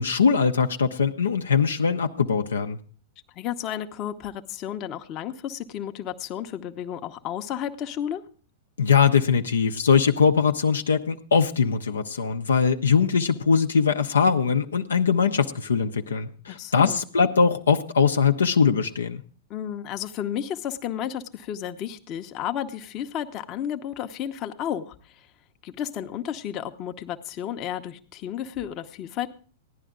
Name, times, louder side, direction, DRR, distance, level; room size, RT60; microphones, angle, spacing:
voice 1, 0.0-2.8 8.8-19.2, left 6 dB, 75° left, 6 dB, 0.7 m, -21 dB
voice 2, 3.3-8.2 16.5-17.1 19.5-25.3 25.6-29.3, left 10 dB, 35° left, 6 dB, 0.9 m, -32 dB
15.5 x 11.0 x 3.7 m, 0.42 s
figure-of-eight pair, 100°, 0 cm